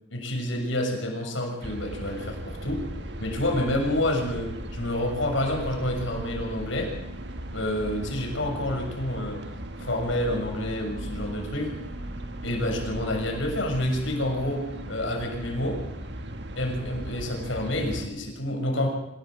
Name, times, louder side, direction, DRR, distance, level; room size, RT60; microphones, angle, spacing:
voice 1, 0.1-2.8 3.2-6.9 7.5-9.4 9.8-11.7 12.4-15.8 16.6-18.9, left 1 dB, 75° left, 2 dB, 6.6 m, -28 dB
sound 1, 1.6-18.1, right 1 dB, 60° right, 2.0 m, -37 dB
26.0 x 16.5 x 7.8 m, 0.89 s
head